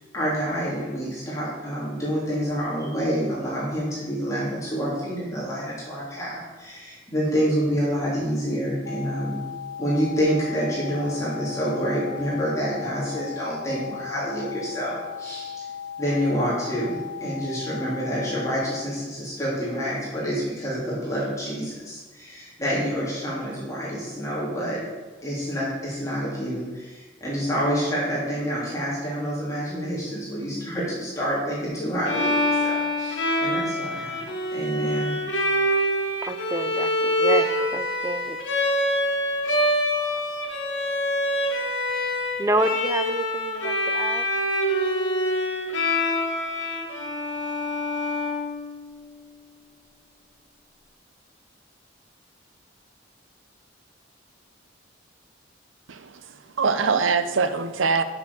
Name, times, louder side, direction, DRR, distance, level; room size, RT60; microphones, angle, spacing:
voice 1, 0.1-9.4 9.8-15.6 16.0-24.8 25.2-34.1 34.5-35.2, equal, 15° left, -8 dB, 3.2 m, -28 dB
sound 1, 8.9-18.9, left 7 dB, 60° left, 0.5 m, -37 dB
Bowed string instrument, 32.1-49.0, left 1 dB, 80° left, 1.6 m, -25 dB
voice 2, 36.2-38.4 42.4-44.3, right 2 dB, 15° right, 10 dB, 0.4 m, -28 dB
voice 3, 55.9-58.0, right 5 dB, 85° right, 11 dB, 0.6 m, -23 dB
7.0 x 7.0 x 6.9 m, 1.3 s
head